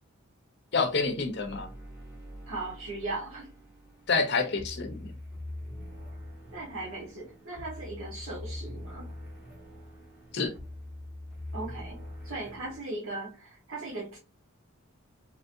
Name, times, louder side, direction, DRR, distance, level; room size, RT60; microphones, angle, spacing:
voice 1, 0.7-1.7 4.1-5.1 10.3-10.5, left 4 dB, 50° left, 0.6 m, -28 dB
sound 1, 0.7-12.8, left 1 dB, ahead, 1.3 m, -44 dB
voice 2, 2.5-3.5 6.5-9.1 11.5-12.0 12.2-14.2, right 2 dB, 75° right, 1.0 m, -38 dB
2.9 x 2.7 x 2.5 m
head